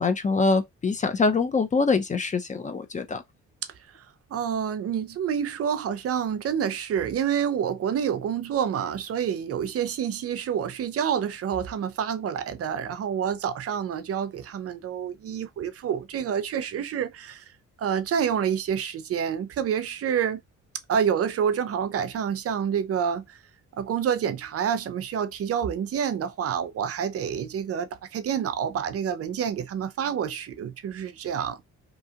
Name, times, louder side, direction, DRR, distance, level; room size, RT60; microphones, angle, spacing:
voice 1, 0.0-3.2, left 4 dB, 25° left, 0.5 m, -24 dB
voice 2, 4.3-17.4 17.8-20.4 20.9-23.4 23.8-31.6, right 8 dB, 50° right, 0.5 m, -28 dB
2.8 x 2.3 x 2.7 m
cardioid pair, 90°, 30 cm